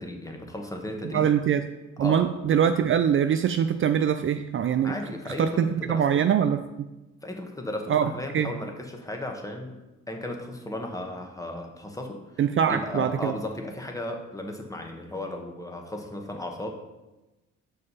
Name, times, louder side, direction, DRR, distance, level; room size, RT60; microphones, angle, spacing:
voice 1, 0.0-1.3 2.0-2.3 4.8-6.1 7.2-9.8 10.1-12.4 12.7-16.7, left 1 dB, 10° left, 3 dB, 1.2 m, -35 dB
voice 2, 1.0-1.6 2.0-5.0 5.4-6.9 7.9-8.5 12.4-13.4, right 8 dB, 45° right, 9 dB, 0.4 m, -23 dB
6.3 x 5.4 x 5.5 m, 1.0 s
cardioid pair, 90°, 30 cm